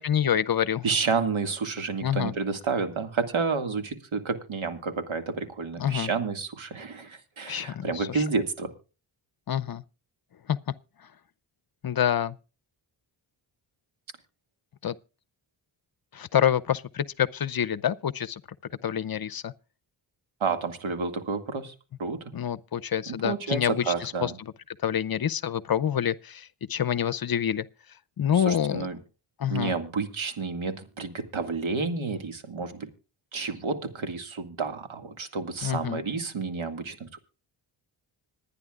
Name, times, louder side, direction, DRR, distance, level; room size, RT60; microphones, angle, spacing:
voice 1, 0.0-0.8 2.0-2.3 5.8-6.1 7.5-8.2 9.5-9.8 10.5-10.6 11.8-12.4 14.8-14.9 16.1-18.4 18.8-19.5 22.3-24.5 24.8-27.6 28.2-28.9 29.4-29.7 35.6-36.0, left 9 dB, 45° left, 0.7 m, -27 dB
voice 2, 0.8-8.7 20.4-21.7 22.0-22.3 23.1-24.4 28.3-29.0 29.5-32.9 33.3-37.2, right 4 dB, 65° right, 2.2 m, -30 dB
26.0 x 9.9 x 2.4 m
cardioid pair, 55°, 50 cm